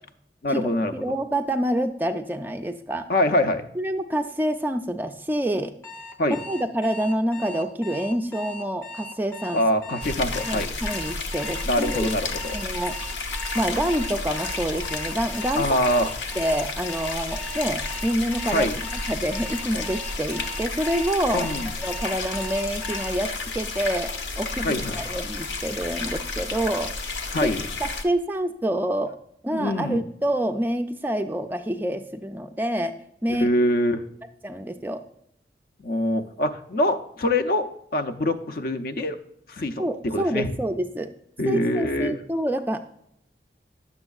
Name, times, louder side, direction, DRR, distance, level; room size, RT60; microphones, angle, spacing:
voice 1, 0.4-0.9 3.1-3.6 6.2-6.4 9.5-10.7 11.6-12.6 15.6-16.1 18.5-18.8 21.3-21.7 24.6-25.0 27.3-27.7 29.5-30.0 33.3-34.0 35.8-37.7 37.9-39.2 39.5-40.5 41.4-42.2, left 1 dB, 55° left, 7 dB, 0.5 m, -24 dB
voice 2, 1.0-3.1 3.8-5.7 6.3-9.6 10.5-12.1 12.5-12.9 13.5-15.7 16.4-24.1 24.4-24.7 25.0-26.9 27.4-27.5 27.8-29.1 29.4-32.9 33.2-33.5 34.4-35.0 39.8-41.1 41.5-42.8, right 1 dB, 10° right, 6 dB, 0.3 m, -27 dB
Alarm, 5.8-23.1, left 1 dB, 15° left, 0.7 m, -39 dB
sound 1, 10.0-28.0, left 3 dB, 90° left, 0.9 m, -32 dB
9.7 x 7.0 x 2.3 m, 0.72 s
head